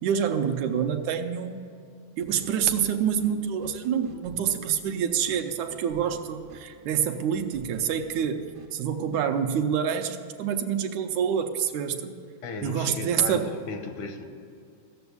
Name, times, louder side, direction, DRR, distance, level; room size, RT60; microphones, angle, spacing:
voice 1, 0.0-1.6 2.2-8.4 8.7-12.1 12.6-13.5, right 8 dB, 85° right, 6 dB, 2.1 m, -27 dB
sound 1, 2.2-8.7, right 4 dB, 60° right, 1.3 m, -48 dB
voice 2, 12.4-14.2, left 4 dB, 85° left, 6 dB, 2.5 m, -35 dB
15.5 x 7.0 x 8.3 m, 2.4 s
omnidirectional pair, 3.4 m